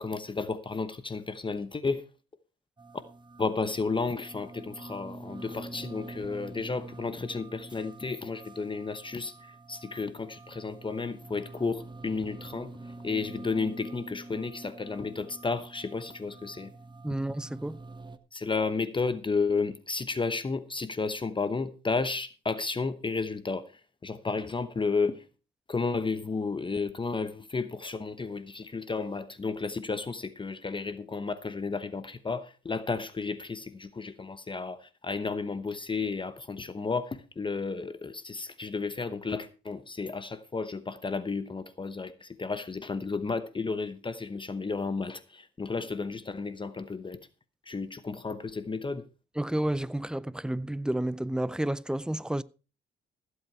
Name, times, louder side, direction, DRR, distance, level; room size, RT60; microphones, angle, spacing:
voice 1, 0.0-2.0 3.4-12.7 13.0-16.7 18.3-23.6 24.0-25.2 25.7-47.2 47.7-49.0, left 4 dB, 25° left, 0.9 m, -32 dB
sound 1, 2.8-18.2, right 2 dB, 25° right, 1.1 m, -46 dB
voice 2, 17.0-17.8 49.4-52.4, right 1 dB, 5° right, 0.5 m, -30 dB
15.0 x 8.0 x 4.6 m
cardioid pair, 90°, 20 cm